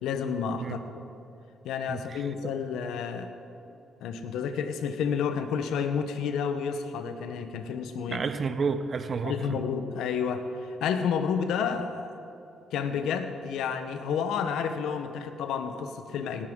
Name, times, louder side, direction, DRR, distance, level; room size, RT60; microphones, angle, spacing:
voice 1, 0.0-1.0 1.6-3.3 4.0-8.2 9.2-12.2 12.7-16.5, left 6 dB, 85° left, 8 dB, 0.9 m, -30 dB
voice 2, 1.9-2.5 8.1-9.6, right 5 dB, 45° right, 11 dB, 0.7 m, -31 dB
18.5 x 11.0 x 3.8 m, 2.7 s
cardioid pair, 90°, 0 cm